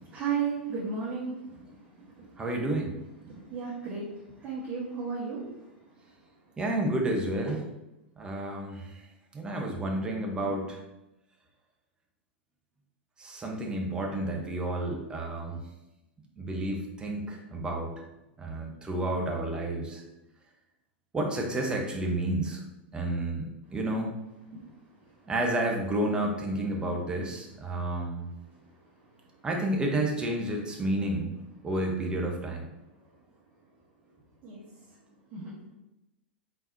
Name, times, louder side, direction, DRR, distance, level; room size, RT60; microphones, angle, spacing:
voice 1, 0.0-2.4 3.2-4.2 4.4-5.4 34.4-34.6 35.3-35.5, right 6 dB, 35° right, -8 dB, 1.5 m, -34 dB
voice 2, 2.4-3.0 6.6-7.7 8.2-9.0 9.3-10.8 13.2-15.6 16.4-17.9 18.4-20.0 21.1-22.6 22.9-24.1 25.3-28.3 29.4-32.7, right 1 dB, 15° right, 0 dB, 1.0 m, -30 dB
4.4 x 3.8 x 2.7 m, 0.93 s
figure-of-eight pair, 95°, 6 cm